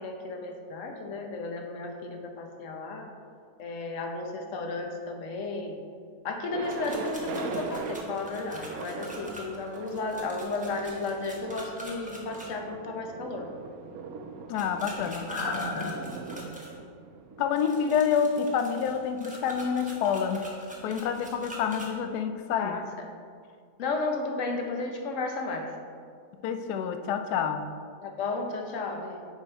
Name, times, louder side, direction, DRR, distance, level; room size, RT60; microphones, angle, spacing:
voice 1, 0.0-3.1 3.6-5.8 6.2-13.5 15.3-16.1 22.6-23.1 23.8-25.7 28.0-29.3, left 3 dB, 60° left, 3 dB, 1.0 m, -33 dB
Thunder, 6.5-18.3, right 5 dB, 70° right, 1.0 m, -41 dB
sound 1, 6.6-12.5 14.6-16.7 17.5-21.9, equal, 5° right, 0.8 m, -44 dB
voice 2, 14.5-15.3 17.4-20.5 20.8-22.8 26.4-27.7, left 7 dB, 85° left, 8 dB, 1.1 m, -28 dB
6.9 x 4.9 x 4.4 m, 2.2 s
omnidirectional pair, 1.7 m